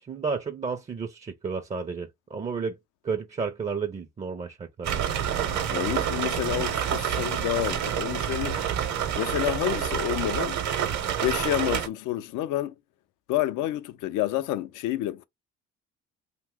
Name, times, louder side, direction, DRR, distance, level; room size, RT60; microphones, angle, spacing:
voice 1, 0.0-2.8 3.0-5.0, right 5 dB, 20° right, 0.4 m, -32 dB
sound 1, 4.8-11.9, right 9 dB, 60° right, 0.8 m, -28 dB
voice 2, 5.7-8.6 9.2-10.6 11.2-12.7 13.3-15.2, left 14 dB, 75° left, 0.5 m, -29 dB
2.7 x 2.2 x 3.6 m
supercardioid pair, 80°, 32 cm